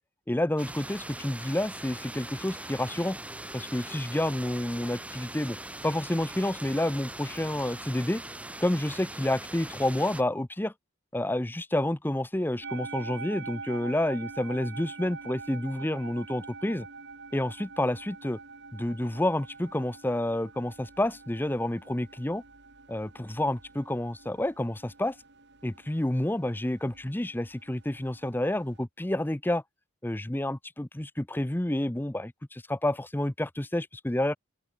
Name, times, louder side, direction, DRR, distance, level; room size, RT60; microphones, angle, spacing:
voice 1, 0.3-3.2 3.5-5.6 5.8-8.2 8.6-10.7 11.1-16.9 17.3-18.4 18.7-22.4 22.9-25.2 25.6-29.6 30.0-34.4, left 1 dB, 10° left, 0.6 m, -29 dB
sound 1, 0.6-10.2, right 1 dB, 5° right, 2.9 m, -41 dB
sound 2, 12.6-28.8, right 4 dB, 55° right, 3.8 m, -45 dB
open air
head